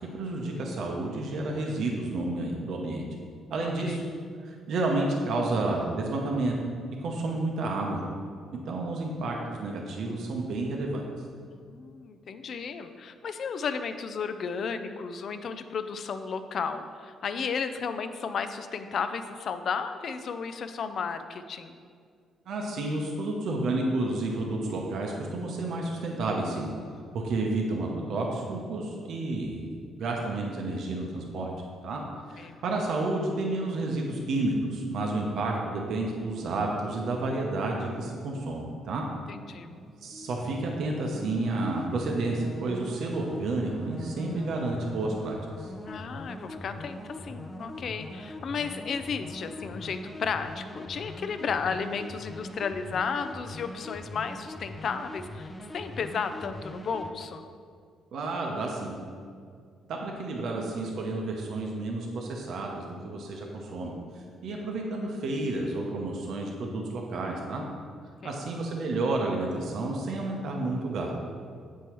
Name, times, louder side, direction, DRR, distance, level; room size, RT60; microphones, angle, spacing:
voice 1, 0.1-3.0 3.5-4.0 4.4-6.5 7.0-8.0 8.7-11.0 22.5-26.7 27.1-31.5 31.8-32.0 32.3-39.0 40.0-45.7 58.1-59.0 59.9-63.9 64.4-67.6 68.2-71.1, right 2 dB, 70° right, 0 dB, 0.7 m, -30 dB
voice 2, 3.6-4.0 11.6-21.8 32.4-32.6 39.3-39.8 45.8-57.5 68.2-68.4, left 6 dB, 60° left, 9 dB, 0.4 m, -33 dB
sound 1, 39.4-57.1, left 1 dB, 15° left, 0.5 m, -42 dB
8.2 x 4.6 x 3.0 m, 2.2 s
cardioid pair, 90°, 0 cm